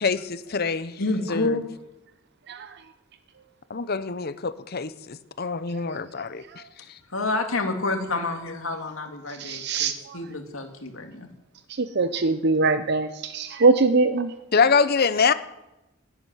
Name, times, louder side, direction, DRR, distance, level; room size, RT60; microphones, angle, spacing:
voice 1, 0.0-1.0 1.3-1.6 3.7-6.6 14.5-15.3, left 5 dB, 50° left, 14 dB, 0.8 m, -24 dB
voice 2, 1.0-1.7 7.1-11.3, left 2 dB, 85° left, 4 dB, 2.5 m, -29 dB
voice 3, 9.4-10.2 11.8-14.3, right 3 dB, 55° right, 11 dB, 0.7 m, -22 dB
12.0 x 8.6 x 9.9 m, 0.97 s
head